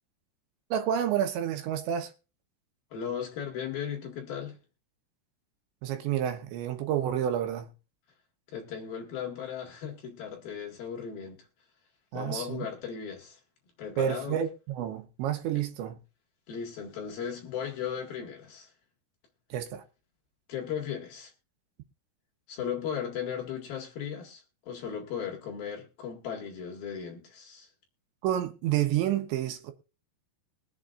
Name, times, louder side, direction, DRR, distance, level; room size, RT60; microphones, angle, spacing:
voice 1, 0.7-2.1 5.8-7.7 12.1-12.7 14.0-16.0 19.5-19.8 28.2-29.7, right 10 dB, 75° right, 3.3 m, -29 dB
voice 2, 2.9-4.6 8.5-11.4 12.1-13.4 13.8-14.4 16.5-18.7 20.5-21.3 22.5-27.7, left 8 dB, 60° left, 3.5 m, -36 dB
22.5 x 7.7 x 2.5 m
omnidirectional pair, 5.4 m